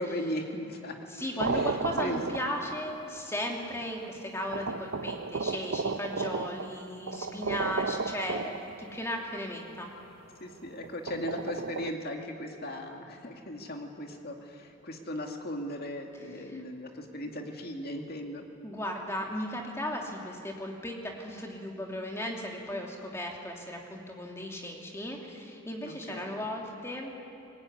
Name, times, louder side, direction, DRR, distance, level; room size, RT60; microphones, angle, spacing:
voice 1, 0.0-0.9 1.5-1.7 2.0-2.2 10.4-18.4 25.8-26.3, left 1 dB, 45° left, 2 dB, 2.3 m, -37 dB
voice 2, 1.1-9.9 16.4-16.6 18.6-27.1, left 1 dB, 15° left, 0 dB, 2.8 m, -36 dB
sound 1, 1.4-3.0 3.8-3.9 4.5-9.0 10.8-11.9, right 4 dB, 60° right, 0.7 m, -33 dB
22.5 x 20.0 x 9.7 m, 2.9 s
head